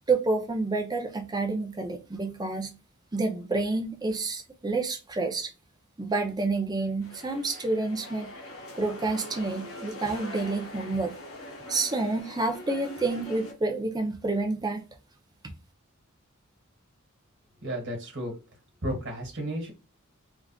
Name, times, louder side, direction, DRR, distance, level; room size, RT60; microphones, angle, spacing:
voice 1, 0.1-2.7 3.1-5.5 6.0-8.3 8.8-11.1 11.7-14.9, right 3 dB, 20° right, 0.5 m, -29 dB
sound 1, 7.0-13.5, left 1 dB, 85° left, 1.1 m, -42 dB
voice 2, 17.6-18.3 18.8-19.7, right 1 dB, 60° right, 1.4 m, -33 dB
3.4 x 2.4 x 2.3 m
head